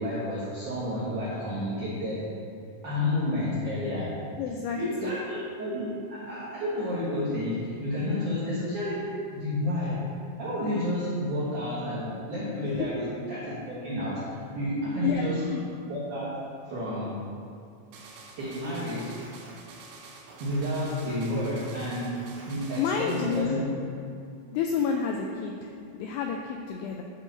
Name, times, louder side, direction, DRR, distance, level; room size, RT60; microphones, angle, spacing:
voice 1, 0.0-2.3 2.8-4.2 4.7-15.5 15.9-16.3 16.7-17.2 18.4-19.3 20.4-23.7, left 1 dB, 75° right, -10 dB, 1.8 m, -30 dB
voice 2, 4.4-5.2 15.0-15.2 15.5-15.6 22.8-23.6 24.5-27.0, left 6 dB, 90° left, 2 dB, 2.7 m, -30 dB
sound 1, 17.9-23.5, right 3 dB, 90° right, 3.7 m, -47 dB
10.0 x 3.8 x 6.7 m, 2.5 s
omnidirectional pair, 5.9 m